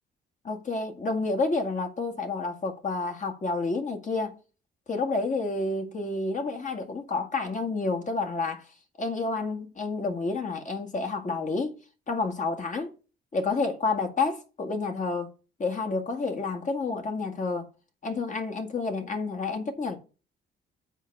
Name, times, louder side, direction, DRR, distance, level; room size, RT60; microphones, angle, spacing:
voice 1, 0.4-4.4 4.9-8.6 9.0-11.7 12.1-12.9 13.3-15.3 15.6-17.7 18.0-20.0, left 3 dB, 40° left, 1.9 m, -29 dB
7.9 x 4.6 x 5.9 m
cardioid pair, 90°, 20 cm